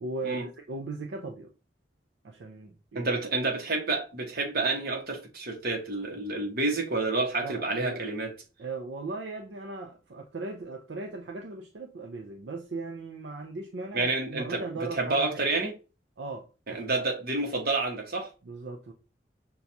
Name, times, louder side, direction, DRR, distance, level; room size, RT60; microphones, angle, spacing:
voice 1, 0.0-1.5 2.2-3.1 7.4-8.1 8.6-15.4 16.2-16.5 16.9-17.0 18.4-18.9, right 3 dB, 75° right, 0.5 m, -38 dB
voice 2, 2.9-8.3 13.9-15.7 16.7-18.3, right 3 dB, 55° right, 1.0 m, -29 dB
5.8 x 2.3 x 2.6 m
head